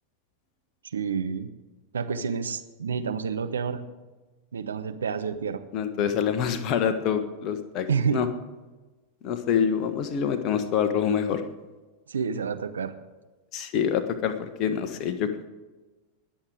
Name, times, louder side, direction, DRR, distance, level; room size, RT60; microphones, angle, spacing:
voice 1, 0.9-1.5 1.9-3.8 4.5-5.6 7.9-8.2 12.1-12.9, right 6 dB, 70° right, 8 dB, 1.1 m, -29 dB
voice 2, 5.7-8.3 9.2-11.4 13.5-15.5, left 8 dB, 40° left, 8 dB, 1.5 m, -26 dB
20.5 x 7.9 x 5.0 m, 1.2 s
figure-of-eight pair, 90°, 0 cm